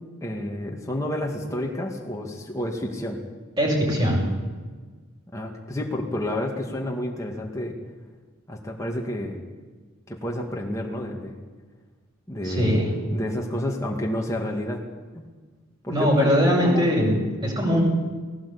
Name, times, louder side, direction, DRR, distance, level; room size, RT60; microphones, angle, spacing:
voice 1, 0.2-3.2 5.3-7.8 8.5-9.4 10.1-11.3 12.3-14.8 15.1-15.2 15.8-16.9 17.7-17.8, left 1 dB, 15° left, 0 dB, 2.1 m, -30 dB
voice 2, 3.6-4.2 12.4-12.9 15.9-17.8, equal, 25° right, -5 dB, 5.8 m, -21 dB
19.5 x 17.0 x 8.6 m, 1.4 s
head